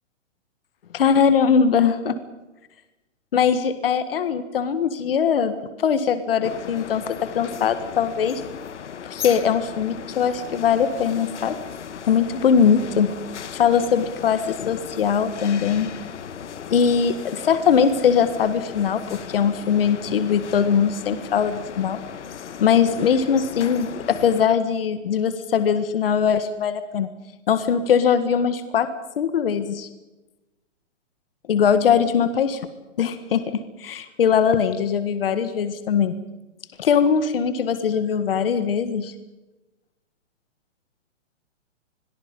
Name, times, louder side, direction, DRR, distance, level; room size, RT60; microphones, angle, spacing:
voice 1, 0.9-2.2 3.3-5.5 5.8-8.4 9.1-11.5 12.1-13.1 13.5-15.9 16.7-22.0 22.6-27.1 27.5-28.9 29.2-29.9 31.5-32.6 33.0-33.4 33.8-36.1 36.8-39.1, left 7 dB, 50° left, 11 dB, 1.7 m, -21 dB
sound 1, 6.4-24.5, left 8 dB, 65° left, 1.6 m, -37 dB
28.0 x 22.0 x 5.4 m, 1.1 s
hypercardioid pair, 180°, 38 cm